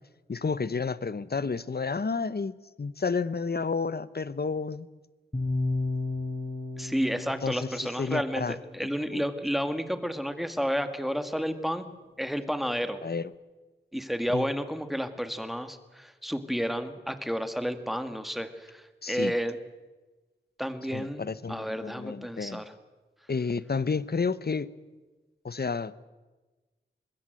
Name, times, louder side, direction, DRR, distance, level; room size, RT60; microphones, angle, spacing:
voice 1, 0.3-4.9 7.4-8.6 9.1-9.2 13.0-13.3 14.3-14.5 19.0-19.3 20.9-22.6 23.3-24.7 25.4-25.9, left 4 dB, 55° left, 17 dB, 0.9 m, -31 dB
sound 1, 5.3-9.4, left 2 dB, 30° left, 4.1 m, -34 dB
voice 2, 6.8-11.9 12.2-13.0 13.9-19.6 20.6-22.6, equal, ahead, 9 dB, 2.0 m, -31 dB
25.0 x 21.0 x 7.8 m, 1.2 s
wide cardioid pair, 80°, 20 cm